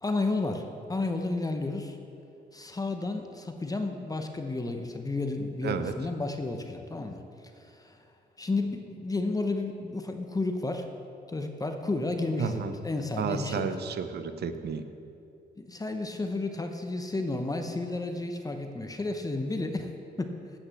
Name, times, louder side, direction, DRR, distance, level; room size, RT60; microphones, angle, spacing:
voice 1, 0.0-2.0 2.5-7.2 7.6-8.0 8.4-10.9 11.3-13.7 15.6-19.9 20.2-20.3, left 2 dB, 20° left, 5 dB, 0.7 m, -32 dB
voice 2, 5.6-5.9 12.4-12.7 13.2-14.8, right 7 dB, 65° right, 10 dB, 0.7 m, -32 dB
8.3 x 6.1 x 7.7 m, 2.7 s
cardioid pair, 90°, 18 cm